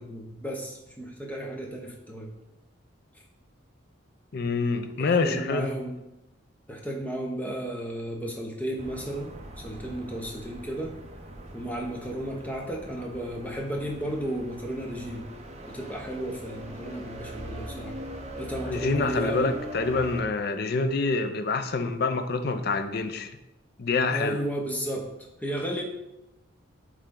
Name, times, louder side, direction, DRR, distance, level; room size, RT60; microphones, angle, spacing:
voice 1, 0.0-2.3 5.0-6.0 6.7-11.0 11.5-15.3 15.6-18.0 18.4-19.5 24.1-25.1 25.4-25.8, right 1 dB, 10° left, 0 dB, 0.8 m, -33 dB
voice 2, 4.3-5.7 18.7-23.3 23.8-24.4, left 3 dB, 50° left, 8 dB, 0.5 m, -26 dB
sound 1, 8.8-20.2, right 1 dB, 30° right, 0.7 m, -42 dB
8.0 x 3.2 x 3.8 m, 0.91 s
head